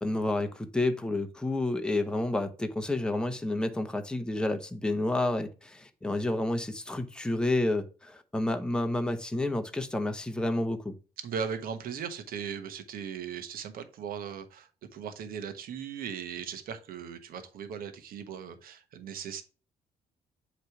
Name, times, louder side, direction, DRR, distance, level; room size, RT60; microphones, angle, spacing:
voice 1, 0.0-11.0, left 2 dB, 5° left, 0.9 m, -30 dB
voice 2, 11.2-19.4, right 7 dB, 70° right, 1.2 m, -38 dB
8.0 x 3.3 x 4.7 m
cardioid pair, 85°, 15 cm